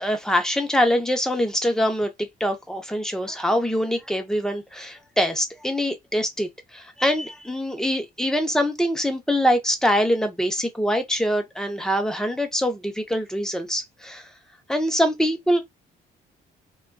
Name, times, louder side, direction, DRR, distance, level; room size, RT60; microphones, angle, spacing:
voice 1, 0.0-14.3 14.7-15.6, equal, 5° left, 0.7 m, -24 dB
2.4 x 2.3 x 2.2 m
cardioid pair, 90°, 20 cm